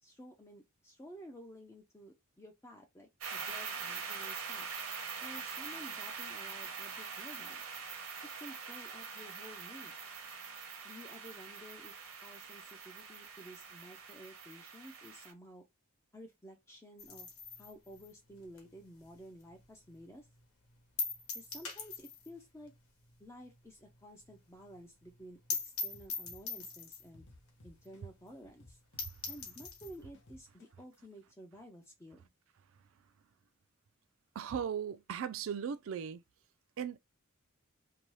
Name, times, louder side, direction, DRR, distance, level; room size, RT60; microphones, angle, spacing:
voice 1, 0.0-4.7 5.2-7.7 8.4-9.9 10.8-11.9 12.2-15.7 16.1-17.3 17.6-20.3 21.3-22.7 23.2-25.4 25.6-27.3 27.6-28.8 29.3-32.3, equal, 15° left, 0.5 m, -53 dB
sound 1, 3.2-15.3, right 5 dB, 85° right, 0.8 m, -44 dB
sound 2, 17.0-19.6 19.9-20.0 20.4-20.5 21.0-22.4 22.7-22.8 23.1-23.2 23.5-23.6 23.9-24.0 24.3-24.4 24.7-24.8 25.1-25.2 25.5-27.1 27.8-27.9 28.3-28.4 28.7-28.8 29.0-30.0, left 5 dB, 75° left, 1.0 m, -41 dB
sound 3, 25.9-28.3 28.6-31.0, left 2 dB, 60° left, 0.8 m, -58 dB
voice 2, 34.3-36.2 36.8-37.0, right 7 dB, 65° right, 0.3 m, -37 dB
2.7 x 2.2 x 3.1 m
head